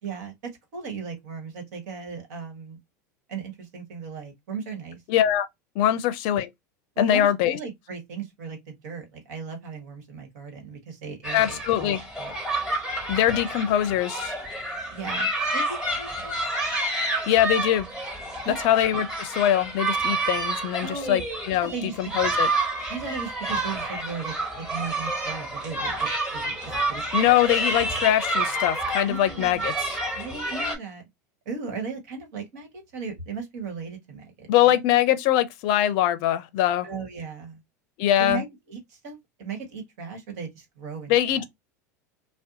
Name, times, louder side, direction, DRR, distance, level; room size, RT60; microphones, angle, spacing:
voice 1, 0.0-0.3 0.7-2.8 3.3-5.0 6.9-12.3 14.9-16.4 18.4-18.6 20.8-21.2 21.6-22.1 22.9-27.3 29.0-29.7 30.1-31.0 31.4-34.8 36.8-37.6 38.2-41.5, right 5 dB, 65° right, 1.3 m, -37 dB
voice 2, 5.1-5.5 5.8-6.5 7.0-7.6 11.3-12.0 13.1-14.3 17.3-17.9 18.5-22.5 27.1-30.0 34.5-36.9 38.0-38.4 41.1-41.4, left 11 dB, 55° left, 0.5 m, -22 dB
sound 1, 11.2-30.8, right 2 dB, 5° right, 1.4 m, -29 dB
2.6 x 2.1 x 3.7 m
hypercardioid pair, 90°, 9 cm